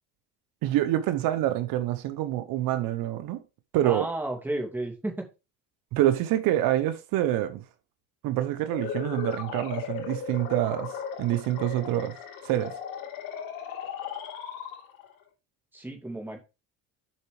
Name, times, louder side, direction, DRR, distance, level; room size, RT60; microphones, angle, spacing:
voice 1, 0.6-3.4 3.7-4.1 5.9-7.6 8.2-12.2 12.4-12.7, right 13 dB, 75° right, 1.2 m, -26 dB
voice 2, 3.8-5.1 15.7-16.4, right 1 dB, 5° right, 2.6 m, -32 dB
sound 1, 8.7-15.2, left 7 dB, 80° left, 3.0 m, -37 dB
7.9 x 5.9 x 5.0 m
cardioid pair, 140°, 34 cm